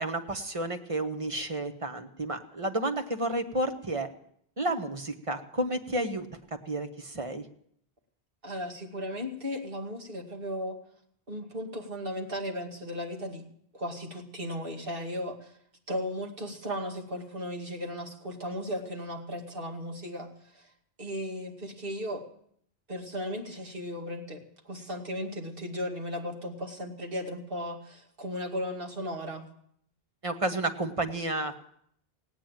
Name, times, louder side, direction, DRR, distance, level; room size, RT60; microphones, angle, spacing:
voice 1, 0.0-4.1 4.6-6.3 6.7-7.4 30.2-31.6, right 1 dB, 35° right, 7 dB, 1.2 m, -31 dB
voice 2, 8.4-10.8 11.3-13.5 13.7-15.6 15.9-20.7 21.0-22.2 22.9-29.4, equal, 60° right, 1 dB, 2.4 m, -36 dB
17.0 x 9.3 x 9.0 m, 0.68 s
omnidirectional pair, 1.0 m